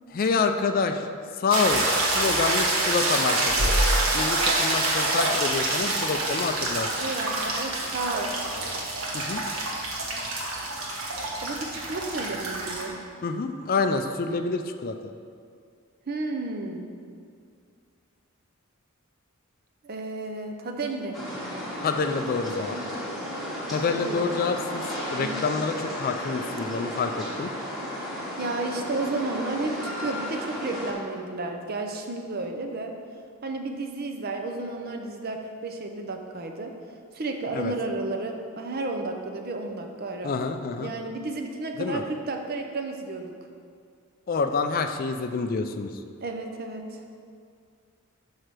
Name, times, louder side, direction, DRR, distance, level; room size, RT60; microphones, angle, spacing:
voice 1, 0.1-1.1 1.4-3.7 4.1-6.9 9.1-9.4 13.2-15.1 21.8-22.8 23.7-27.5 37.5-37.7 40.2-40.9 41.8-42.0 44.3-45.9, left 4 dB, 40° left, 7 dB, 0.3 m, -27 dB
sound 1, 1.5-12.8, right 2 dB, 80° right, 1.2 m, -26 dB
voice 2, 7.0-8.3 11.4-13.0 16.1-16.9 19.8-21.2 24.0-24.3 28.4-32.9 33.4-36.7 37.1-40.3 40.8-43.3 46.2-47.0, right 2 dB, 45° right, 4 dB, 0.6 m, -32 dB
sound 2, 21.1-30.9, equal, ahead, 1.3 m, -34 dB
5.6 x 4.8 x 6.0 m, 2.2 s
head